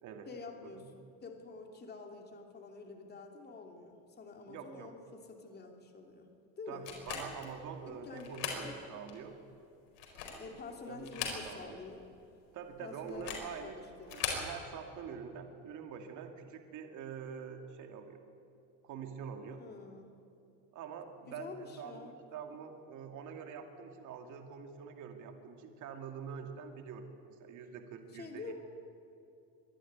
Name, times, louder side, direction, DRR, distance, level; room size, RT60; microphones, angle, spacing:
voice 1, 0.3-6.3 6.6-6.9 7.9-8.8 10.4-12.0 12.8-14.4 19.4-20.1 21.3-22.2 22.5-22.6 28.1-28.5, left 3 dB, 25° left, 3 dB, 2.8 m, -48 dB
voice 2, 4.5-4.9 6.7-9.3 10.9-11.1 11.4-11.8 12.5-13.8 14.1-18.2 18.8-19.6 20.7-28.5, right 6 dB, 55° right, 5 dB, 2.4 m, -45 dB
sound 1, 6.8-7.5 8.2-8.7 9.1-9.2 9.9-10.5 11.0-11.8 12.1-12.2 13.1-13.5 14.0-14.5, left 6 dB, 80° left, 4.7 m, -39 dB
23.5 x 11.5 x 9.4 m, 2.7 s
supercardioid pair, 115°, 36 cm